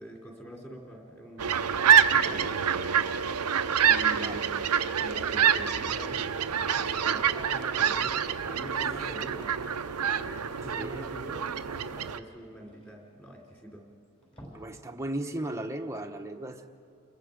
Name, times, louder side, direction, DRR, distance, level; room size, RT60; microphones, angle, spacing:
voice 1, 0.0-1.6 2.1-2.5 3.8-4.5 5.0-9.5 10.1-13.9, right 1 dB, 10° left, -1 dB, 3.2 m, -45 dB
sound 1, 1.4-12.2, right 8 dB, 90° right, 0.7 m, -26 dB
voice 2, 10.6-11.1 14.5-16.7, right 1 dB, 15° right, 4 dB, 1.0 m, -36 dB
sound 2, 12.3-13.7 14.1-14.9 15.2-15.4 15.8-15.9, equal, 25° left, 6.3 m, -53 dB
29.5 x 21.5 x 5.1 m, 2.4 s
head